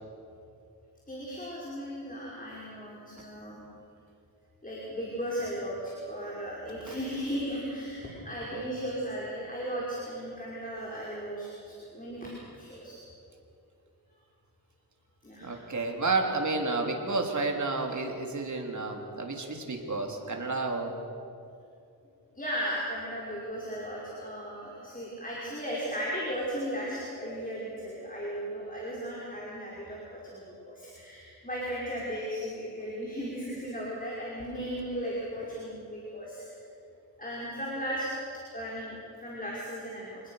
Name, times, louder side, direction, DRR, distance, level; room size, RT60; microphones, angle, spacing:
voice 1, 1.1-3.6 4.6-12.9 15.2-15.6 22.3-36.5 37.2-38.1 38.3-40.3, equal, 20° left, -5 dB, 5.7 m, -36 dB
voice 2, 8.2-8.7 15.4-20.9, right 3 dB, 45° right, 2 dB, 3.6 m, -31 dB
27.0 x 19.5 x 6.7 m, 2.6 s
wide cardioid pair, 90°, 40 cm